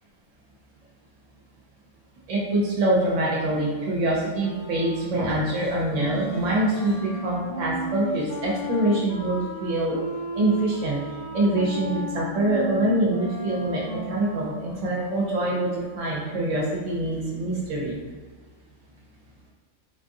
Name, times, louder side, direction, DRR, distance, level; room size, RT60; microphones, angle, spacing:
voice 1, 2.3-10.0 10.3-18.0, right 1 dB, 65° right, -4 dB, 1.0 m, -25 dB
Wind instrument woodwind instrument, 4.4-16.4, right 1 dB, 40° left, 0.7 m, -35 dB
3.8 x 2.4 x 2.6 m, 1.4 s
omnidirectional pair, 1.4 m